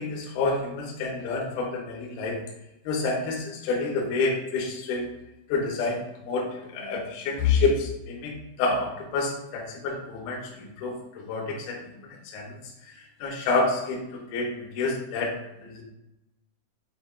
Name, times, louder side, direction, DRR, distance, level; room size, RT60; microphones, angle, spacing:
voice 1, 0.0-2.4 2.9-5.1 5.5-11.8 12.3-12.5 13.2-14.0 14.3-15.3 15.6-15.8, left 3 dB, 85° left, -2 dB, 2.1 m, -28 dB
8.1 x 2.8 x 2.3 m, 0.89 s
omnidirectional pair, 5.8 m